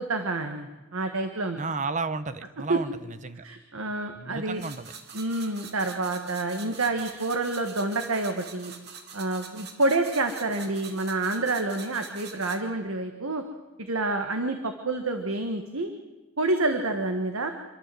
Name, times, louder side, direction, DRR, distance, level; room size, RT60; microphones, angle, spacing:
voice 1, 0.0-1.6 2.7-2.8 3.4-4.6 5.1-8.7 9.1-13.4 13.8-15.9 16.4-17.5, right 2 dB, 85° right, 6 dB, 1.5 m, -28 dB
voice 2, 1.6-3.4 4.1-4.9, right 3 dB, 35° right, 12 dB, 0.9 m, -33 dB
sound 1, 4.6-12.6, right 6 dB, 50° right, 2.1 m, -45 dB
27.0 x 12.5 x 7.7 m, 1.2 s
head